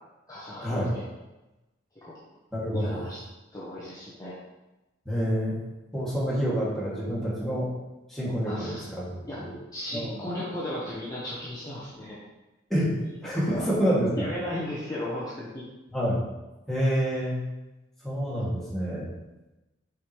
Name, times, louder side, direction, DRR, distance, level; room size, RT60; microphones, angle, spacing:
voice 1, 0.3-1.0 2.0-2.1 2.7-3.2 3.5-4.4 8.4-8.9 9.3-9.5 9.7-12.2 13.0-13.6 14.1-15.7, left 1 dB, 20° left, -9 dB, 1.2 m, -36 dB
voice 2, 2.5-3.0 5.1-5.6 5.9-7.7 8.1-9.2 9.5-9.6 9.9-10.2 12.7-12.9 13.2-14.3 15.9-16.2 16.7-17.4 18.0-19.1, equal, ahead, -8 dB, 2.2 m, -27 dB
7.2 x 4.9 x 3.2 m, 1.0 s
head